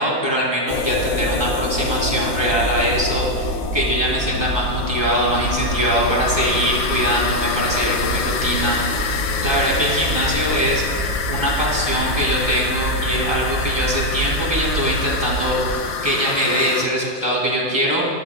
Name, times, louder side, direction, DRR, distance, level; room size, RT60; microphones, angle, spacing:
voice 1, 0.0-18.0, equal, 15° right, -4 dB, 3.0 m, -22 dB
sound 1, 0.7-16.9, left 6 dB, 75° left, 1.5 m, -27 dB
sound 2, 0.7-15.7, right 1 dB, 60° right, 4.4 m, -27 dB
20.5 x 13.0 x 2.3 m, 2.1 s
omnidirectional pair, 2.1 m